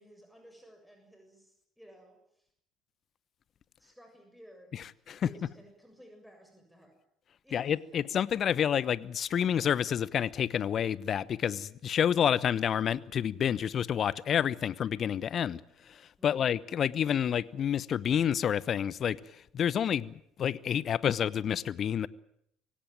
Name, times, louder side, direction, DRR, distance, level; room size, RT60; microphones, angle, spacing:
voice 1, 0.0-2.5 3.8-7.0 7.4-8.0 16.2-16.5, equal, ahead, 7.2 m, -56 dB
voice 2, 4.7-5.3 7.5-15.6 16.2-19.2 19.5-22.1, left 9 dB, 45° left, 0.9 m, -29 dB
26.0 x 17.0 x 9.1 m
hypercardioid pair, 60°, 0 cm